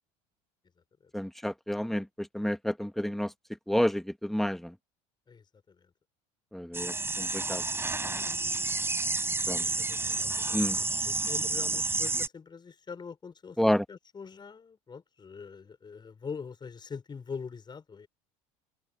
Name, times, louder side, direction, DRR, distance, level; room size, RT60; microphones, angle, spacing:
voice 1, 1.1-3.3 3.7-4.7 6.5-7.6 9.5-9.6 10.5-10.8 13.6-13.8, equal, ahead, 1.7 m, -29 dB
voice 2, 5.3-5.9 9.5-18.1, left 5 dB, 30° left, 5.6 m, -44 dB
sound 1, 6.7-12.3, right 3 dB, 15° right, 5.4 m, -30 dB
supercardioid pair, 95°, 16 cm